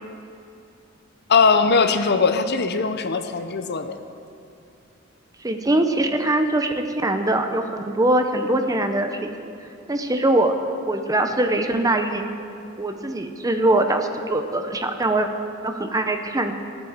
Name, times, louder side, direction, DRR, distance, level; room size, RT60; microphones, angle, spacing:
voice 1, 1.3-4.0, left 4 dB, 55° left, 9 dB, 0.7 m, -20 dB
voice 2, 5.4-9.5 9.9-10.5 10.9-12.2 12.8-15.3 15.6-16.5, right 1 dB, 15° right, 6 dB, 0.7 m, -22 dB
14.5 x 8.4 x 7.2 m, 2.7 s
head